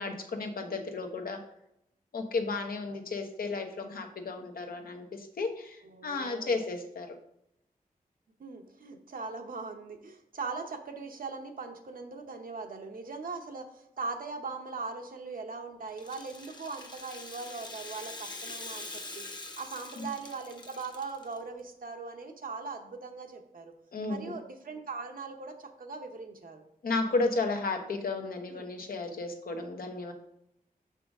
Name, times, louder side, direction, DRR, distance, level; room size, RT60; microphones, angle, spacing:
voice 1, 0.0-1.4 2.1-7.1 20.0-20.1 23.9-24.4 26.8-30.1, left 3 dB, 75° left, 3 dB, 1.0 m, -33 dB
voice 2, 5.8-6.6 8.4-19.3 19.6-23.7 24.1-26.6 28.5-28.7, right 4 dB, 70° right, 4 dB, 1.0 m, -40 dB
Rattle (instrument), 15.9-21.4, left 2 dB, 30° left, 0.9 m, -44 dB
6.2 x 5.7 x 3.6 m, 0.77 s
wide cardioid pair, 95°, 15 cm